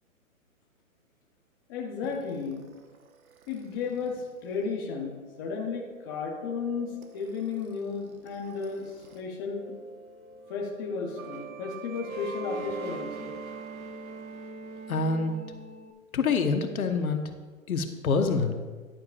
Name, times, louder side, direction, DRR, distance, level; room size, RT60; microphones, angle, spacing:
voice 1, 1.7-2.6 3.5-9.7 10.5-13.3, left 5 dB, 15° left, -1 dB, 0.6 m, -34 dB
sound 1, 2.0-9.2 9.5-15.9, right 4 dB, 75° right, 1.3 m, -44 dB
voice 2, 14.9-15.4 16.1-17.2 17.7-18.5, left 4 dB, 75° left, 6 dB, 1.2 m, -26 dB
12.0 x 10.5 x 2.5 m, 1.4 s
hypercardioid pair, 150°, 43 cm